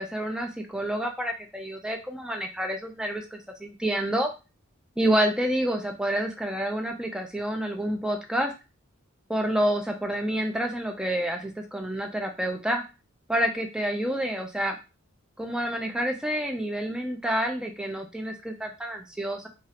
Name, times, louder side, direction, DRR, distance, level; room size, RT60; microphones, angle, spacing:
voice 1, 0.0-4.3 5.0-8.5 9.3-12.8 13.3-14.8 15.4-19.5, right 1 dB, 5° right, 3 dB, 0.4 m, -28 dB
3.0 x 2.4 x 2.8 m, 0.29 s
head